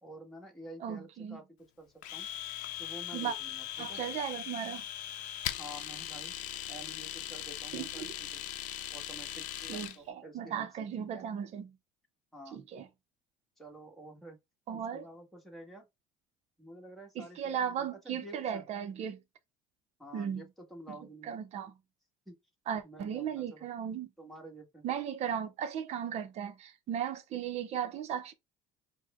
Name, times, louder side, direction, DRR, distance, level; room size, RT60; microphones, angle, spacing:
voice 1, 0.0-1.4 1.8-2.3 2.8-4.0 5.6-6.3 6.7-8.5 8.9-11.2 12.3-12.6 13.6-14.4 14.7-15.9 16.6-18.7 20.0-21.3 22.2-22.4 22.8-23.7 24.2-24.8, right 1 dB, ahead, 1.6 m, -50 dB
voice 2, 0.8-1.4 3.1-3.3 3.8-4.8 7.7-8.1 9.7-11.8 12.5-12.9 14.7-15.1 17.2-19.2 20.1-20.5 20.9-21.0 21.2-21.8 22.7-24.1 24.8-28.3, right 8 dB, 55° right, 0.8 m, -36 dB
Domestic sounds home sounds, 2.0-10.0, left 12 dB, 70° left, 0.6 m, -40 dB
4.7 x 2.2 x 3.7 m
supercardioid pair, 110°, 14 cm